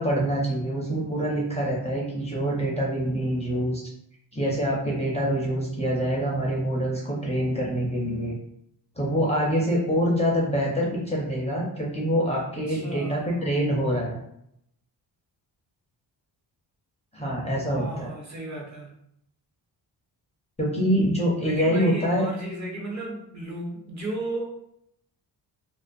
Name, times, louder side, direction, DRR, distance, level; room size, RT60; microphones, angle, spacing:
voice 1, 0.0-3.8 4.3-8.4 9.0-14.2 17.1-18.1 20.6-22.3, equal, 15° left, -3 dB, 0.5 m, -25 dB
voice 2, 12.7-13.4 17.7-18.9 21.4-24.6, right 2 dB, 40° right, -1 dB, 0.8 m, -34 dB
2.4 x 2.3 x 2.5 m, 0.74 s
cardioid pair, 90°, 44 cm